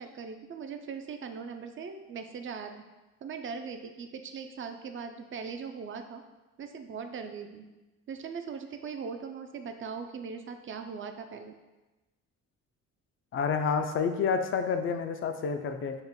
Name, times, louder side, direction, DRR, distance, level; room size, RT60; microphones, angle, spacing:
voice 1, 0.0-2.9 3.2-6.2 6.6-7.6 8.1-11.5, right 5 dB, 35° right, 7 dB, 0.4 m, -40 dB
voice 2, 13.3-16.0, left 6 dB, 35° left, 7 dB, 0.4 m, -29 dB
3.6 x 2.0 x 3.7 m, 1.1 s
supercardioid pair, 50°, 37 cm